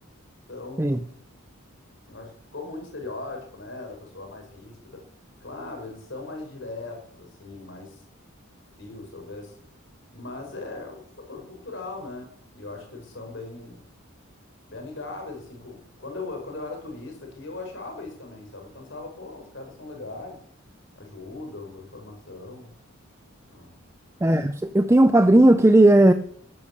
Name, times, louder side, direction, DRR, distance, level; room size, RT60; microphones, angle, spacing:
voice 1, 0.5-1.0 2.1-5.0 5.4-8.0 8.8-9.6 10.1-13.8 14.7-20.4 21.0-22.7 23.5-23.8, left 3 dB, 60° left, 3 dB, 4.7 m, -39 dB
voice 2, 24.2-26.1, right 1 dB, 15° right, 10 dB, 0.5 m, -16 dB
13.5 x 10.5 x 6.9 m, 0.63 s
head